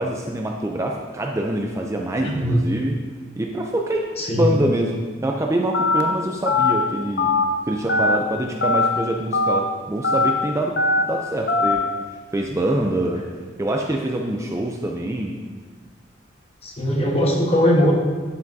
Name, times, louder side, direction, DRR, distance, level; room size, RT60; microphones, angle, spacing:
voice 1, 0.0-3.0 3.4-4.1 4.4-7.3 7.7-11.9 12.3-13.2 13.6-15.4, right 1 dB, 15° right, 1 dB, 0.4 m, -25 dB
voice 2, 2.2-2.6 4.2-4.5 16.6-17.9, equal, 30° left, -1 dB, 1.2 m, -20 dB
Telephone, 5.7-6.0 6.5-6.7 7.2-7.4 7.9-8.2 8.6-8.9 9.3-9.6 10.0-10.3 10.8-11.0 11.5-11.7, left 3 dB, 55° left, 0.7 m, -19 dB
12.0 x 5.8 x 2.6 m, 1.5 s
head